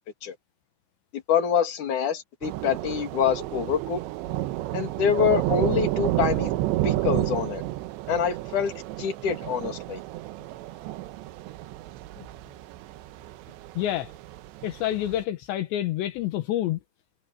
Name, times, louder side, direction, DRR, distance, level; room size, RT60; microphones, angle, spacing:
voice 1, 1.3-4.0 4.7-6.5 6.8-7.6 8.1-8.7 9.0-10.0, left 7 dB, 50° left, 4.0 m, -25 dB
Thunder / Rain, 2.4-15.2, right 16 dB, 85° right, 3.1 m, -31 dB
voice 2, 13.8-14.1 14.6-16.8, left 13 dB, 80° left, 3.4 m, -28 dB
omnidirectional pair, 5.2 m